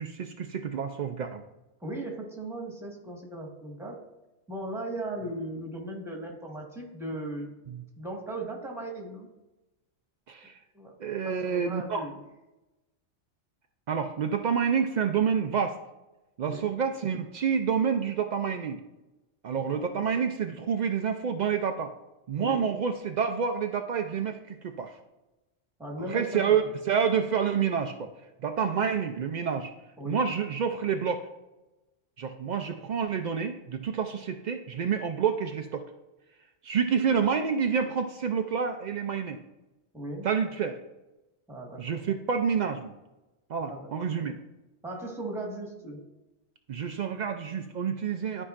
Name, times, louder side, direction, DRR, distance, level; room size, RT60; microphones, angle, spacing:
voice 1, 0.0-1.4 7.7-7.8 10.3-10.6 11.0-12.1 13.9-15.8 16.4-18.8 19.4-21.9 22.3-24.9 26.1-28.1 28.4-29.7 30.1-31.3 32.2-35.9 36.6-39.4 40.2-40.8 41.8-42.9 43.5-44.4 46.7-48.4, right 7 dB, 80° right, 6 dB, 0.4 m, -28 dB
voice 2, 1.8-4.0 4.5-7.5 8.0-9.3 10.7-11.0 11.2-12.2 16.5-16.7 19.6-19.9 22.4-22.7 25.8-26.6 30.0-30.2 39.9-40.3 41.5-42.0 43.7-44.3 44.8-46.1, right 1 dB, ahead, -2 dB, 1.4 m, -37 dB
12.5 x 4.8 x 2.5 m, 1.0 s
omnidirectional pair, 1.3 m